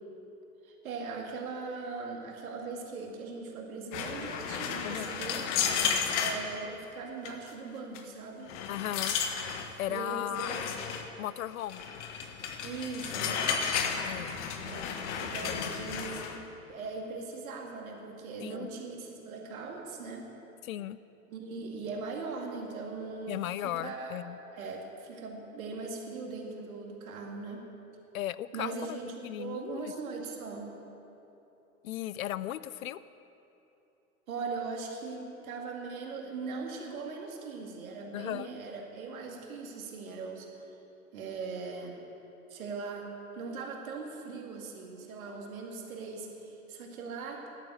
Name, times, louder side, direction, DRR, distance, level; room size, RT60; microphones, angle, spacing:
voice 1, 0.6-5.5 6.2-8.5 9.9-10.6 12.6-13.6 14.6-20.3 21.3-24.2 24.5-27.6 28.5-30.7 34.3-40.5 41.1-42.0 42.5-43.1 43.4-47.4, right 4 dB, 65° right, 1 dB, 2.4 m, -40 dB
sound 1, 3.9-6.4 7.3-7.5 8.0-8.1 8.5-9.7 10.3-11.1 11.7-16.4, left 7 dB, 50° left, 1.4 m, -33 dB
voice 2, 8.7-9.2 9.8-10.5 11.2-11.8 14.0-14.4 15.4-15.8 18.4-18.7 20.6-21.0 23.3-24.4 28.1-29.0 29.2-29.9 31.8-33.0 38.1-38.5, left 13 dB, 65° left, 16 dB, 0.6 m, -36 dB
11.5 x 9.2 x 8.7 m, 2.9 s
figure-of-eight pair, 100°, 44 cm